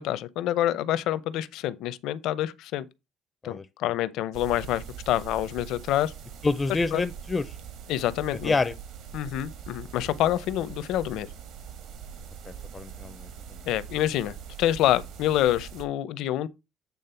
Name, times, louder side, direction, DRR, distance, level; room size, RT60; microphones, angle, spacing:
voice 1, 0.0-2.8 3.4-6.1 6.9-7.0 7.9-8.6 9.1-11.3 13.7-16.5, left 13 dB, 75° left, 0.6 m, -27 dB
sound 1, 4.3-15.8, right 8 dB, 65° right, 1.6 m, -43 dB
voice 2, 6.4-7.5 8.4-8.7 12.5-13.3, left 3 dB, 20° left, 0.4 m, -27 dB
8.6 x 3.5 x 5.6 m
cardioid pair, 145°, 0 cm